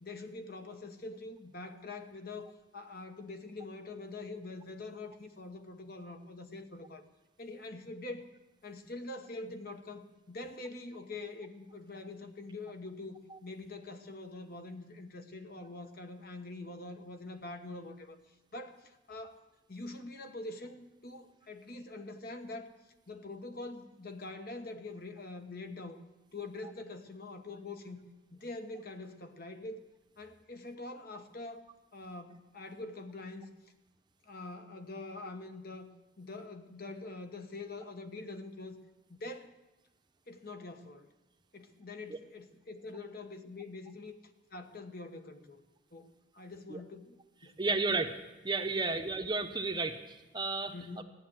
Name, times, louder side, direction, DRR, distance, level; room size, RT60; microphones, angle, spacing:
voice 1, 0.0-7.0 7.4-8.3 8.6-18.2 18.5-19.4 19.7-22.7 23.1-26.0 26.3-28.0 28.3-29.8 30.2-31.7 31.9-33.5 34.3-35.9 36.2-38.8 39.1-39.5 40.3-41.1 41.5-44.1 44.5-45.6 45.9-47.2 47.4-47.8 48.9-49.0 50.7-51.0, left 2 dB, 50° left, 6 dB, 1.1 m, -44 dB
voice 2, 47.6-48.2 48.4-51.0, right 3 dB, 25° right, 7 dB, 0.8 m, -33 dB
14.5 x 9.8 x 7.7 m, 1.1 s
head